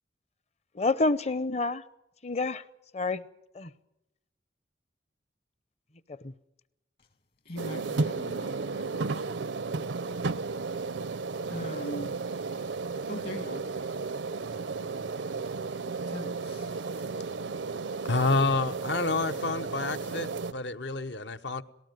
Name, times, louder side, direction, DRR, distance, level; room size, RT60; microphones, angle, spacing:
voice 1, 0.7-1.8 2.2-2.6 2.9-3.2 3.5-3.7 6.1-6.3, left 3 dB, 40° left, 0.7 m, -28 dB
voice 2, 7.5-9.2 11.5-12.2 13.1-13.7 16.1-16.9, equal, 55° left, 1.7 m, -41 dB
sound 1, 7.6-20.5, right 4 dB, 85° right, 0.7 m, -33 dB
voice 3, 18.0-21.6, left 3 dB, 75° left, 1.0 m, -29 dB
18.5 x 18.5 x 9.3 m
head